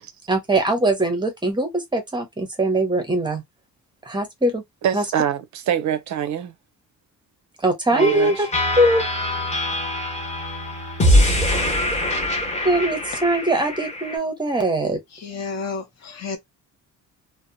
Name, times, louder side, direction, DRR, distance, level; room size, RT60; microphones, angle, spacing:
voice 1, 0.3-3.4 4.1-4.6 4.9-5.0 7.6-8.5 8.8-9.0 12.6-15.0, right 1 dB, 15° right, 0.6 m, -21 dB
voice 2, 4.8-6.5 7.9-8.3, right 9 dB, 55° right, 0.5 m, -24 dB
sound 1, 8.0-14.2, left 1 dB, 20° left, 0.9 m, -23 dB
voice 3, 15.1-16.4, left 4 dB, 50° left, 0.8 m, -31 dB
2.7 x 2.0 x 2.5 m
cardioid pair, 170°, 35 cm